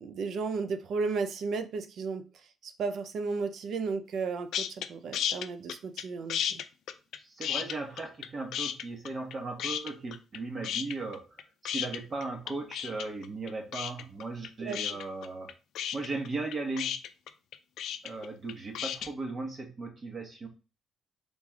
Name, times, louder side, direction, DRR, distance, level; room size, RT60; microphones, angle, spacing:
voice 1, 0.0-2.2 2.6-6.6 14.6-14.8, right 4 dB, 65° right, 0.6 m, -34 dB
sound 1, 4.5-4.9 5.1-6.0 6.3-8.3 8.5-9.3 9.6-10.4 10.6-19.1, left 10 dB, 80° left, 0.4 m, -33 dB
voice 2, 7.1-15.5 15.9-17.0 18.0-20.5, right 3 dB, 40° right, 1.4 m, -37 dB
3.8 x 3.3 x 3.6 m
cardioid pair, 90°, 0 cm